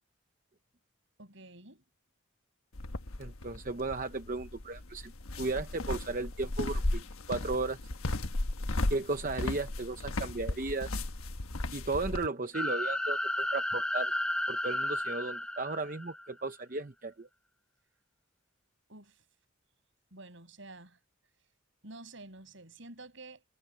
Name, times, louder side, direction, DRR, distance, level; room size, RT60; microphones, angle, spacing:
voice 1, 1.2-1.8 18.9-19.2 20.1-21.0 21.8-23.4, right 2 dB, 60° right, 7.0 m, -49 dB
sound 1, 2.7-12.3, left 2 dB, 85° left, 1.3 m, -35 dB
voice 2, 3.2-7.8 8.9-11.0 11.7-14.1 14.5-17.3, right 3 dB, 40° right, 0.8 m, -35 dB
sound 2, 12.5-16.3, left 1 dB, 5° left, 0.4 m, -33 dB
head